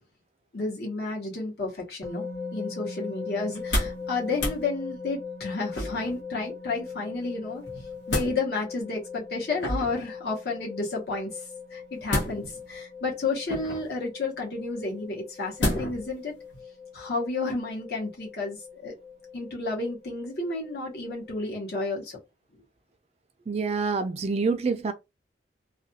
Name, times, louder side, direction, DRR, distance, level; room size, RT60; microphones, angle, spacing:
voice 1, 0.5-2.2 2.5-7.6 8.1-16.3 16.9-18.9 19.3-22.2, left 3 dB, 60° left, 1.0 m, -31 dB
sound 1, 2.0-21.4, left 5 dB, 20° left, 0.8 m, -40 dB
sound 2, 3.5-4.0 4.3-4.6 5.7-6.2 7.6-8.4 9.6-10.1 12.1-12.7 13.5-13.9 15.6-16.1 16.5-16.6, left 1 dB, 85° left, 1.0 m, -29 dB
voice 2, 23.5-24.9, right 4 dB, 35° right, 0.3 m, -26 dB
2.4 x 2.2 x 2.6 m
head